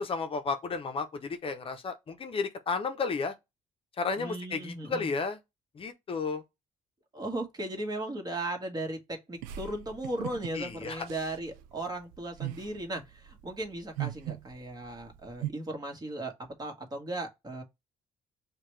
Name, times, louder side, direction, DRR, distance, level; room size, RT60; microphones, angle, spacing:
voice 1, 0.0-3.3 4.0-5.4 5.8-6.4 10.5-11.1, left 4 dB, 40° left, 0.7 m, -33 dB
voice 2, 4.2-5.1 7.1-16.3 16.6-17.6, right 1 dB, 30° right, 1.5 m, -37 dB
sound 1, 9.4-15.5, right 13 dB, 90° right, 0.4 m, -40 dB
5.5 x 2.3 x 3.2 m
supercardioid pair, 75°, 14 cm